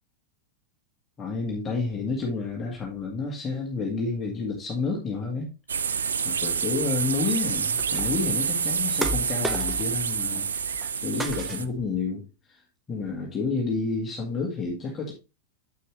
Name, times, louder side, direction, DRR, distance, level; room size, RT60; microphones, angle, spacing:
voice 1, 1.2-5.5 6.3-10.5 11.0-12.6 12.9-15.1, left 4 dB, 20° left, -1 dB, 1.8 m, -30 dB
sound 1, 5.7-11.7, right 6 dB, 70° right, 0.5 m, -28 dB
sound 2, 7.8-8.3 9.0-10.0 10.3-10.9 11.2-11.9, equal, 5° right, 1.1 m, -34 dB
8.2 x 6.5 x 3.2 m, 0.27 s
figure-of-eight pair, 90°, 0 cm